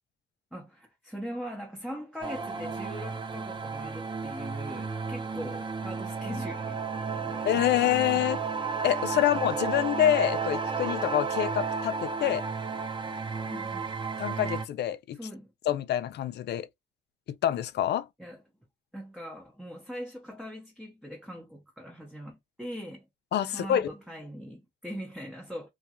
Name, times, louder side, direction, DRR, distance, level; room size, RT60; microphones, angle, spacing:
voice 1, 0.5-6.8 7.1-7.7 13.5-13.9 15.1-15.5 18.2-18.4 18.9-23.1 23.4-25.7, equal, 5° right, 0.8 m, -41 dB
sound 1, 2.2-14.6, right 5 dB, 25° right, 0.5 m, -33 dB
voice 2, 7.5-8.4 8.8-12.5 14.2-15.2 15.7-16.7 17.4-18.1 23.3-23.9, left 11 dB, 60° left, 0.4 m, -26 dB
2.4 x 2.2 x 2.8 m
cardioid pair, 90°, 20 cm